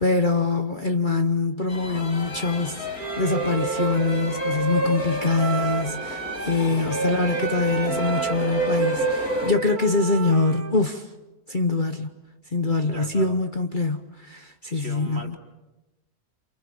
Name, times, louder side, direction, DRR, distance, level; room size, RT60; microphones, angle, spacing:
voice 1, 0.0-11.1 11.5-12.1 12.5-15.4, left 3 dB, 35° left, 1.2 m, -24 dB
sound 1, 1.7-9.5, right 2 dB, 70° left, 3.9 m, -29 dB
Wind instrument woodwind instrument, 3.0-6.6 6.9-10.8, right 5 dB, 80° right, 1.9 m, -31 dB
voice 2, 6.6-7.0 12.8-13.4 14.7-15.4, equal, 40° right, 3.2 m, -39 dB
29.0 x 28.5 x 7.2 m
omnidirectional pair, 1.6 m